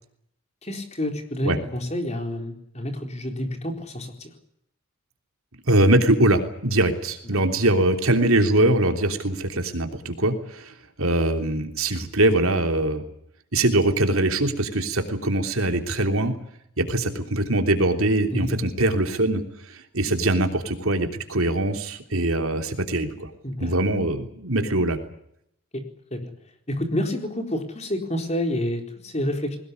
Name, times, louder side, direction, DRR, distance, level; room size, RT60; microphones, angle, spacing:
voice 1, 0.6-4.3 7.3-7.4 18.3-18.6 23.4-23.7 25.7-25.8 26.1-26.3 26.7-29.6, left 1 dB, 30° left, 4 dB, 4.2 m, -29 dB
voice 2, 5.7-13.0 13.5-16.3 16.8-19.4 19.7-23.3 23.6-25.0, right 1 dB, 75° right, 6 dB, 3.2 m, -22 dB
21.5 x 19.5 x 9.6 m, 0.74 s
head